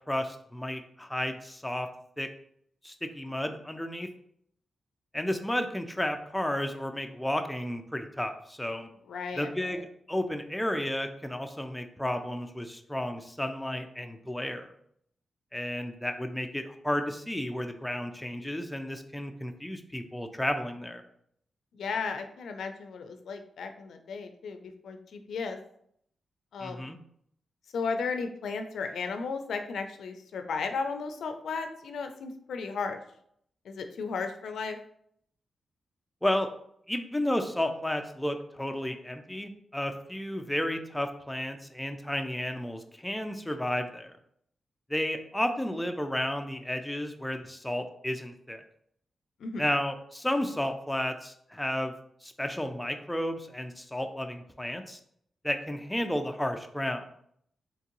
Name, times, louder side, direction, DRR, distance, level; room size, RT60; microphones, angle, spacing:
voice 1, 0.1-1.9 2.2-2.3 2.8-4.1 5.1-8.9 9.4-9.8 10.1-14.7 15.5-21.0 26.6-27.0 36.2-36.5 36.9-44.2 44.9-48.6 49.6-51.9 52.2-55.0 55.4-57.1, left 1 dB, 5° left, 6 dB, 0.3 m, -32 dB
voice 2, 9.1-9.8 21.7-25.6 26.5-26.8 27.7-33.0 33.6-34.8 49.4-49.6, left 5 dB, 85° left, 6 dB, 0.4 m, -35 dB
3.5 x 2.9 x 2.9 m, 0.68 s
cardioid pair, 105°, 0 cm